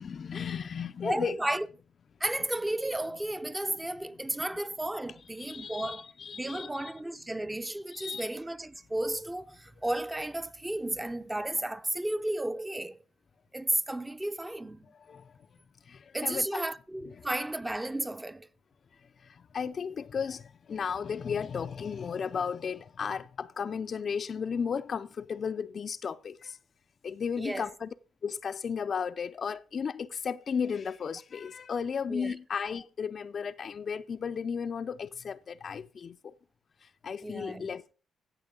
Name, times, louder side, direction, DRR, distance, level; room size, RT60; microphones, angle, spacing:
voice 1, 0.0-1.4 5.4-6.9 7.9-8.3 14.9-15.3 15.9-16.6 17.2-17.3 19.2-26.6 27.0-27.9 28.2-36.3 36.8-37.9, left 6 dB, 50° left, 0.4 m, -35 dB
voice 2, 1.0-1.7 2.2-6.1 6.3-13.0 13.5-14.9 16.1-18.5 27.4-27.7 32.1-32.3 37.2-37.7, right 1 dB, 10° right, 0.5 m, -33 dB
16.0 x 6.1 x 3.7 m
cardioid pair, 90°, 0 cm